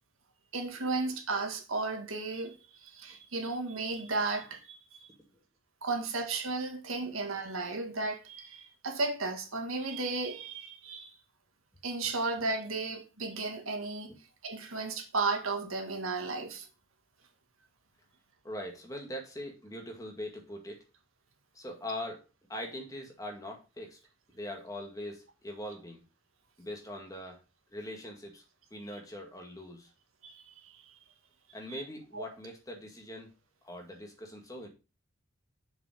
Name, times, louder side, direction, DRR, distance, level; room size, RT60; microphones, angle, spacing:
voice 1, 0.5-4.8 5.8-11.1 11.8-14.1 14.4-16.7 30.2-30.8 31.7-31.8 32.1-32.3, right 3 dB, 90° right, 1.9 m, -34 dB
voice 2, 18.4-20.8 21.5-24.0 24.3-26.0 26.6-27.4 27.7-28.4 28.7-29.9 31.5-33.3 33.6-34.7, left 1 dB, 15° left, 1.9 m, -42 dB
6.8 x 5.3 x 5.0 m
head